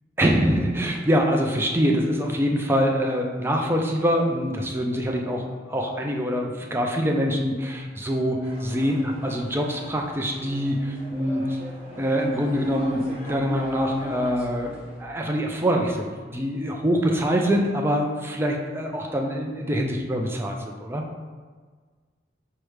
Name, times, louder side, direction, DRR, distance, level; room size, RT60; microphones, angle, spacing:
voice 1, 0.2-11.6 12.0-14.7 15.0-21.0, equal, 10° right, 1 dB, 0.4 m, -24 dB
sound 1, 8.4-15.0, equal, 30° right, 1.0 m, -39 dB
4.7 x 2.1 x 4.7 m, 1.5 s
head